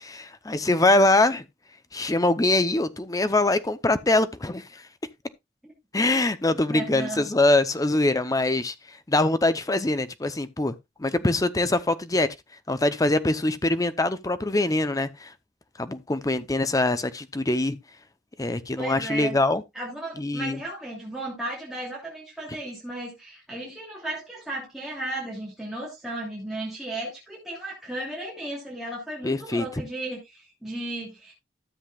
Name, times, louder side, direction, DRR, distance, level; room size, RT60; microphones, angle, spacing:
voice 1, 0.0-1.4 1.9-4.8 5.9-8.7 9.1-10.7 11.0-12.3 12.7-15.3 15.8-17.8 18.4-19.6 20.2-20.6 29.2-29.7, left 2 dB, 20° left, 0.7 m, -23 dB
voice 2, 6.7-7.2 18.8-19.4 19.7-31.3, right 1 dB, ahead, 2.9 m, -35 dB
13.0 x 7.9 x 2.4 m
head